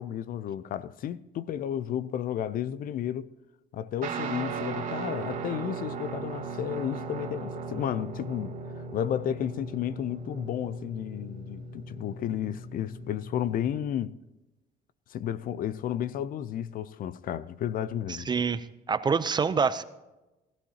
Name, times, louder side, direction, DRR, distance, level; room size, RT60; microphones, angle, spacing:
voice 1, 0.0-3.3 3.7-8.5 8.9-14.2 15.1-18.3, left 10 dB, 55° left, 0.5 m, -32 dB
Guitar, 4.0-13.8, right 4 dB, 55° right, 2.1 m, -37 dB
voice 2, 18.1-19.8, right 5 dB, 25° right, 0.5 m, -27 dB
17.5 x 13.0 x 2.8 m
cardioid pair, 110°, 17 cm